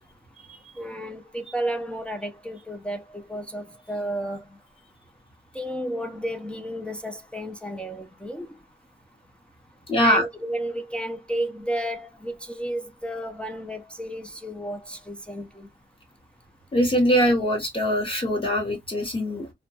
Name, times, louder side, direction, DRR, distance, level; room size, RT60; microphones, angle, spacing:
voice 1, 0.8-4.6 5.5-8.6 10.0-15.7, right 1 dB, 5° left, 0.3 m, -32 dB
voice 2, 9.9-10.2 16.7-19.5, equal, 30° left, 0.7 m, -22 dB
2.6 x 2.1 x 2.6 m
wide cardioid pair, 175°, 18 cm